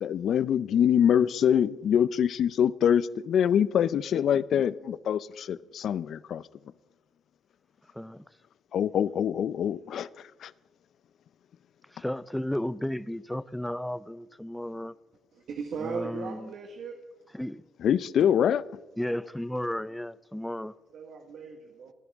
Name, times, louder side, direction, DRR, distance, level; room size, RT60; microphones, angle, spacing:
voice 1, 0.0-6.4 8.7-10.1 10.4-10.5 17.8-18.6, left 9 dB, 65° left, 0.5 m, -24 dB
voice 2, 11.9-14.9 15.8-16.5 17.3-17.6 19.0-20.7, left 1 dB, 5° left, 0.4 m, -33 dB
voice 3, 15.3-17.0 20.9-21.9, right 5 dB, 70° right, 1.6 m, -37 dB
28.0 x 11.0 x 3.6 m
cardioid pair, 90°, 0 cm